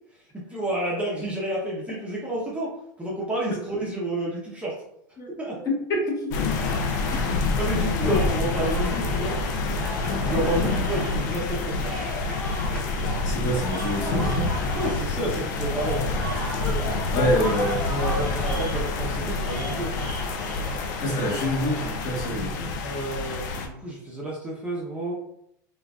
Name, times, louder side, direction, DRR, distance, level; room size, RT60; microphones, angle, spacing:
voice 1, 0.3-2.7 3.0-4.7 5.4-5.6 7.0-7.1 7.6-9.4 10.2-11.9 14.7-16.1 17.1-20.1 22.8-25.1, right 1 dB, 10° right, -5 dB, 0.7 m, -30 dB
voice 2, 5.2-6.3 7.1-7.2 13.2-14.5 17.1-17.8 21.0-22.8, equal, 35° left, -3 dB, 1.2 m, -27 dB
sound 1, 6.3-23.7, left 3 dB, 65° left, 0.5 m, -27 dB
sound 2, 6.6-21.9, equal, 5° left, 1.1 m, -36 dB
3.8 x 2.4 x 2.3 m, 0.75 s
supercardioid pair, 135°, 10 cm